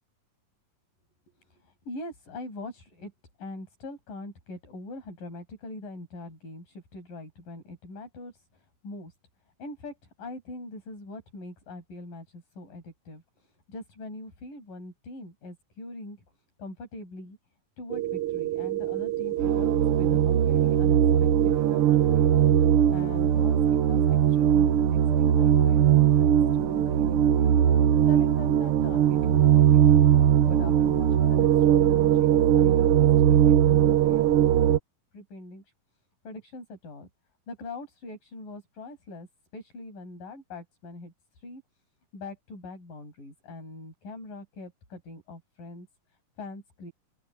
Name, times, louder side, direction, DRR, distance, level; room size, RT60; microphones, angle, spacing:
voice 1, 1.5-3.1 3.4-9.1 9.6-16.2 16.6-17.4 17.8-22.3 22.9-27.5 28.1-30.0 30.5-34.8 35.1-35.6 36.2-37.1 37.5-39.3 39.5-41.6 42.1-45.9 46.4-46.9, left 2 dB, 75° left, 9.2 m, -42 dB
sound 1, 17.9-34.8, right 10 dB, 80° right, 1.2 m, -20 dB
open air
omnidirectional pair, 3.9 m